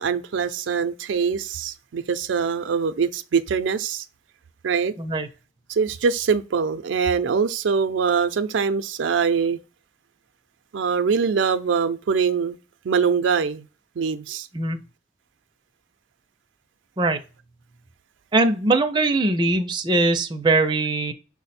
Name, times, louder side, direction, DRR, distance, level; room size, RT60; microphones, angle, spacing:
voice 1, 0.0-4.1 4.6-4.9 5.7-9.6 10.7-12.6 12.8-13.7 14.0-14.5, right 6 dB, 85° right, 0.4 m, -23 dB
voice 2, 5.0-5.3 14.5-14.8 17.0-17.2 18.3-21.1, right 2 dB, 25° right, 0.4 m, -21 dB
6.0 x 2.1 x 4.1 m
head